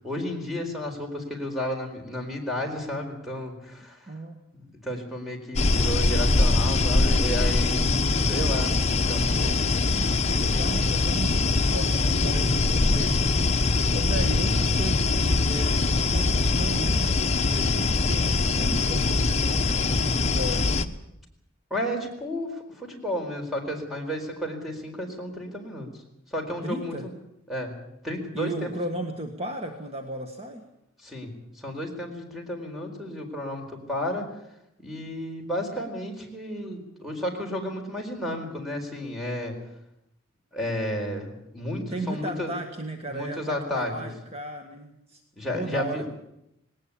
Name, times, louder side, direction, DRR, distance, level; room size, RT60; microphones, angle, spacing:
voice 1, 0.0-4.1 4.6-8.7 9.1-9.6 10.5-10.9 21.7-25.9 26.3-27.1 27.5-27.7 28.0-28.9 31.0-34.3 34.8-39.6 40.5-42.5 43.1-44.1 45.4-46.1, left 1 dB, ahead, 2 dB, 4.4 m, -32 dB
voice 2, 4.1-4.4 7.6-8.4 9.4-9.7 10.4-20.6 26.6-27.1 28.3-30.6 41.9-45.2 45.5-46.1, right 1 dB, 30° right, 5 dB, 1.6 m, -35 dB
sound 1, 5.6-20.9, left 3 dB, 35° left, 1.0 m, -23 dB
19.5 x 19.0 x 8.6 m, 0.81 s
head